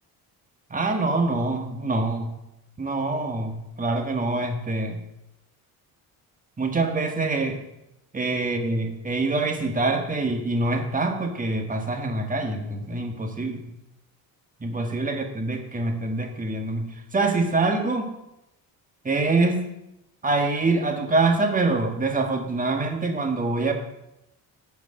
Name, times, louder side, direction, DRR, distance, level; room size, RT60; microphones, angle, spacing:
voice 1, 0.7-2.4 2.8-5.0 6.6-7.6 8.1-13.7 14.6-18.1 19.0-19.7 20.2-23.7, right 3 dB, 20° right, 4 dB, 1.7 m, -25 dB
10.0 x 5.1 x 7.7 m, 0.87 s
cardioid pair, 110°, 38 cm